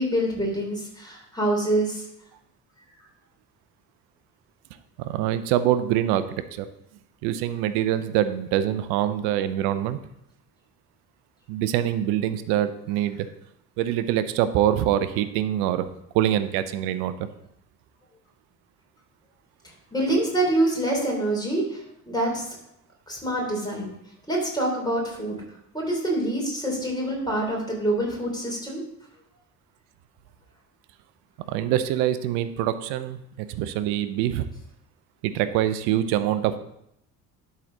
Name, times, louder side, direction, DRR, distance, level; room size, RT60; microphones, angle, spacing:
voice 1, 0.0-2.0 19.9-22.4 23.1-23.9 24.3-25.4 25.7-28.8, right 1 dB, 10° left, -1 dB, 3.3 m, -26 dB
voice 2, 5.0-6.2 6.5-6.7 7.2-10.0 11.5-13.3 13.8-15.9 16.1-17.1 31.5-33.2 33.5-34.5 35.2-36.6, right 11 dB, 60° right, 13 dB, 0.7 m, -24 dB
11.5 x 4.2 x 3.8 m, 0.76 s
figure-of-eight pair, 55°, 48 cm